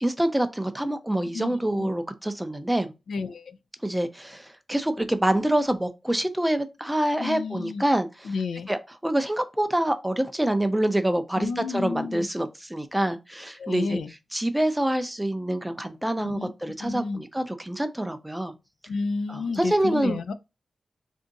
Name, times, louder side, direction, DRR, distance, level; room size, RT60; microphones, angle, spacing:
voice 1, 0.0-2.9 3.8-8.3 8.7-14.0 14.3-18.5 19.3-20.3, right 1 dB, 5° right, 0.4 m, -26 dB
voice 2, 1.3-1.9 3.1-3.6 7.2-7.8 8.2-8.7 11.4-12.3 13.6-14.1 16.2-16.5 16.8-17.2 18.9-20.3, left 4 dB, 80° left, 0.4 m, -31 dB
3.5 x 2.6 x 3.9 m
wide cardioid pair, 155°, 0 cm